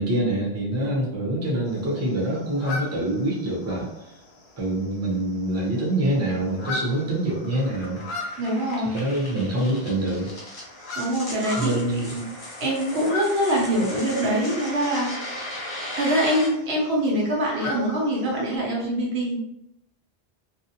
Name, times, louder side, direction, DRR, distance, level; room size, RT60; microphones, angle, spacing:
voice 1, 0.0-3.9 4.6-8.1 8.9-10.3 11.6-12.2, right 1 dB, 20° right, -4 dB, 0.5 m, -25 dB
sound 1, 1.7-18.6, left 2 dB, 80° left, 0.8 m, -40 dB
sound 2, 5.8-16.5, left 1 dB, 35° left, 0.6 m, -37 dB
voice 2, 8.4-8.9 11.0-12.2 12.6-15.4 15.9-19.4, equal, 90° right, -2 dB, 1.0 m, -24 dB
2.5 x 2.0 x 2.8 m, 0.81 s
omnidirectional pair, 1.0 m